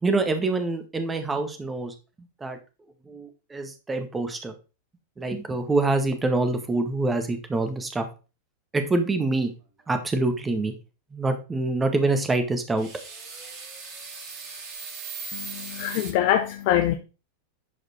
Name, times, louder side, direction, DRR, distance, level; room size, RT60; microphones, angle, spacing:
voice 1, 0.0-1.9 2.4-2.6 3.1-4.5 5.2-8.0 8.7-9.5 9.9-10.7 11.1-12.9, right 2 dB, 15° right, 1.6 m, -25 dB
sound 1, 12.7-16.1, right 4 dB, 40° right, 4.0 m, -38 dB
voice 2, 15.3-16.9, left 12 dB, 55° left, 0.9 m, -24 dB
11.5 x 5.0 x 4.4 m
hypercardioid pair, 95°, 0 cm